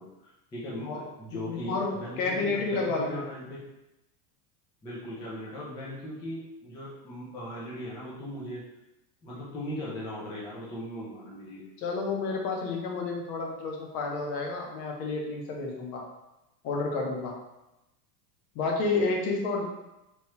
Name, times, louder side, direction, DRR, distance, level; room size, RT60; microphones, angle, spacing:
voice 1, 0.0-3.6 4.8-8.7 9.2-11.6, equal, 10° left, -7 dB, 0.3 m, -39 dB
voice 2, 0.8-3.3 11.8-16.0 16.6-17.4 18.5-19.6, left 3 dB, 60° left, 0 dB, 0.9 m, -30 dB
3.1 x 2.3 x 3.0 m, 0.94 s
supercardioid pair, 125°, 50 cm